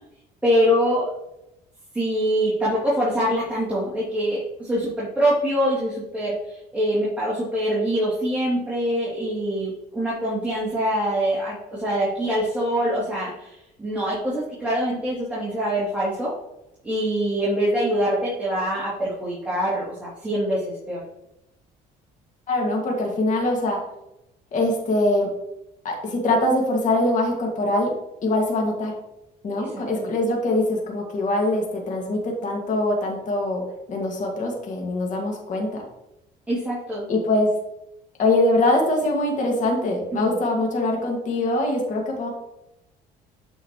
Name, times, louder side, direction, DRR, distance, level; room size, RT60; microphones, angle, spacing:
voice 1, 0.4-1.1 1.9-16.3 16.8-21.0 29.6-30.0 36.5-37.1 40.1-40.3, equal, 10° right, -9 dB, 3.0 m, -24 dB
voice 2, 22.5-23.8 24.5-25.3 25.8-29.0 29.4-35.9 37.1-37.5 38.2-42.3, left 1 dB, 50° left, 0 dB, 2.2 m, -23 dB
8.4 x 5.8 x 3.2 m, 0.87 s
cardioid pair, 110°, 17 cm